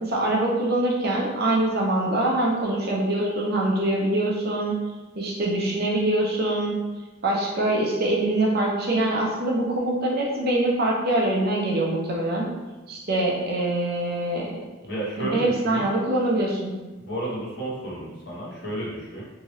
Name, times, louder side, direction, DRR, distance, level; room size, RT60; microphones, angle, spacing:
voice 1, 0.0-4.8 5.1-6.8 7.2-12.5 12.9-14.5 15.2-16.7, right 1 dB, 50° right, -2 dB, 0.7 m, -24 dB
voice 2, 14.8-15.9 17.0-19.2, right 1 dB, 60° left, -4 dB, 0.9 m, -32 dB
2.9 x 2.7 x 2.9 m, 1.2 s
head